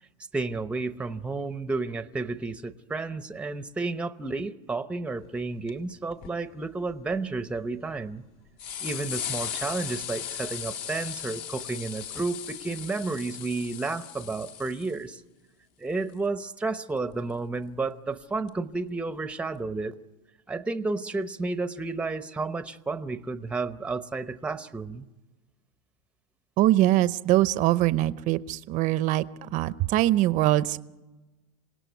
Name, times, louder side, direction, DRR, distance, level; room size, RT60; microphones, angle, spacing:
voice 1, 0.3-8.2 8.8-15.2 15.8-19.9 20.5-25.1, right 3 dB, 5° right, 11 dB, 0.8 m, -31 dB
sound 1, 5.4-5.5 5.7-5.8 6.1-6.3 6.9-7.6 8.2-8.3 8.6-15.0 17.1-17.2 18.5-18.6, left 9 dB, 55° left, 1.7 m, -37 dB
voice 2, 26.6-30.8, right 15 dB, 40° right, 15 dB, 0.7 m, -23 dB
27.0 x 18.0 x 9.4 m, 1.2 s
supercardioid pair, 130°, 19 cm